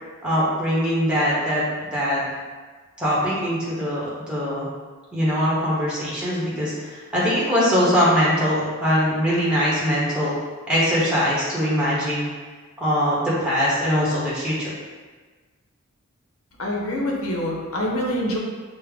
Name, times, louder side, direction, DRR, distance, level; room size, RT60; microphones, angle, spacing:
voice 1, 0.2-2.2 3.0-4.7 5.1-10.3 10.7-12.3 12.8-14.7, equal, 5° right, -8 dB, 1.0 m, -22 dB
voice 2, 16.6-18.4, left 1 dB, 75° left, -1 dB, 0.8 m, -25 dB
5.3 x 2.1 x 3.5 m, 1.4 s
head